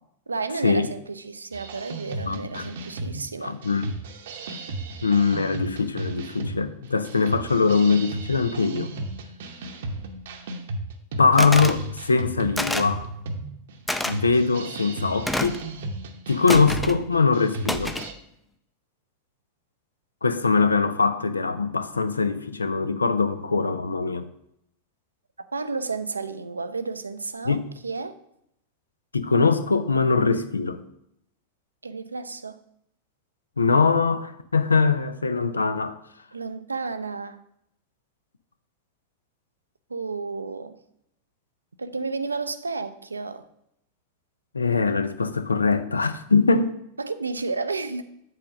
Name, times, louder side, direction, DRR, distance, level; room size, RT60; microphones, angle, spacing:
voice 1, 0.3-3.6 25.5-28.2 31.8-32.6 36.3-37.4 39.9-40.8 41.8-43.5 47.0-48.0, right 4 dB, 80° right, 0.4 m, -32 dB
sound 1, 1.5-18.1, right 2 dB, 60° right, 0.8 m, -35 dB
voice 2, 2.2-2.7 3.4-3.9 5.0-8.9 11.2-13.1 14.0-15.6 16.3-18.0 20.2-24.3 27.4-27.7 29.1-30.8 33.6-36.0 44.5-46.7, left 4 dB, 75° left, 0.5 m, -22 dB
sound 2, 11.4-11.8 12.6-13.0 13.9-14.1 15.3-15.6 16.5-17.0 17.7-18.1, left 1 dB, 5° left, 0.4 m, -27 dB
7.7 x 3.7 x 6.2 m
figure-of-eight pair, 90°, 0 cm